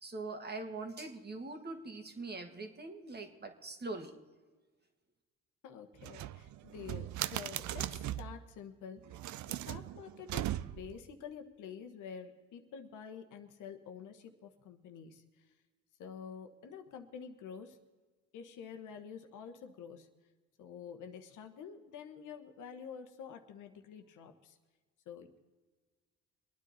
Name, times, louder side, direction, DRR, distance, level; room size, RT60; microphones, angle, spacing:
voice 1, 0.0-4.1, right 3 dB, 35° right, 5 dB, 1.8 m, -42 dB
voice 2, 5.6-9.2 9.5-15.4 16.0-17.8 18.3-20.1 20.6-24.6 25.1-25.4, left 7 dB, 85° left, 6 dB, 1.3 m, -48 dB
sound 1, 6.0-8.4 9.1-11.0, right 13 dB, 70° right, 0.5 m, -39 dB
24.0 x 9.6 x 4.2 m, 1.3 s
cardioid pair, 90°, 30 cm